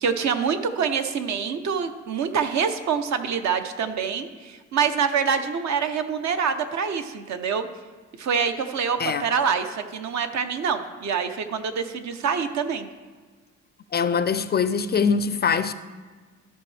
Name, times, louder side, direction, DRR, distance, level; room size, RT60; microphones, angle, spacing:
voice 1, 0.0-7.7 8.2-12.9, right 6 dB, 65° right, 0.8 m, -26 dB
voice 2, 13.9-15.7, left 6 dB, 35° left, 0.4 m, -23 dB
13.5 x 5.4 x 3.3 m
cardioid pair, 90°, 30 cm